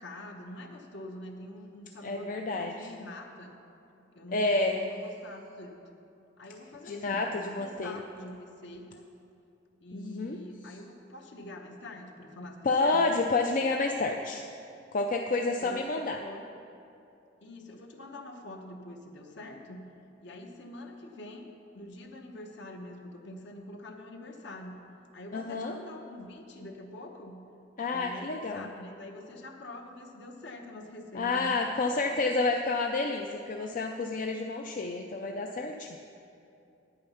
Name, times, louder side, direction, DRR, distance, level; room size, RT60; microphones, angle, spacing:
voice 1, 0.0-3.6 4.1-5.8 6.4-9.0 9.8-13.2 15.6-16.4 17.4-19.9 20.2-24.9 25.1-27.5 27.9-31.8, left 1 dB, 65° left, 3 dB, 1.0 m, -45 dB
voice 2, 2.0-2.9 4.3-4.8 6.9-7.9 9.9-10.4 12.6-14.4 14.9-16.2 25.3-25.8 27.8-28.7 31.1-36.0, left 3 dB, 45° left, 3 dB, 0.4 m, -29 dB
9.0 x 8.7 x 5.7 m, 2.6 s
head